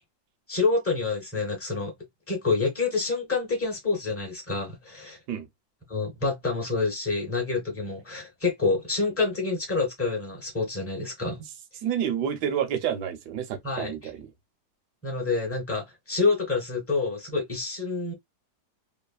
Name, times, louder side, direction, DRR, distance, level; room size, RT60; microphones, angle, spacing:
voice 1, 0.5-1.9 2.3-5.2 5.9-11.4 13.6-13.9 15.0-18.1, left 4 dB, 15° left, 0.5 m, -27 dB
voice 2, 11.8-14.3, right 9 dB, 70° right, 1.2 m, -29 dB
3.2 x 2.0 x 2.3 m
omnidirectional pair, 1.9 m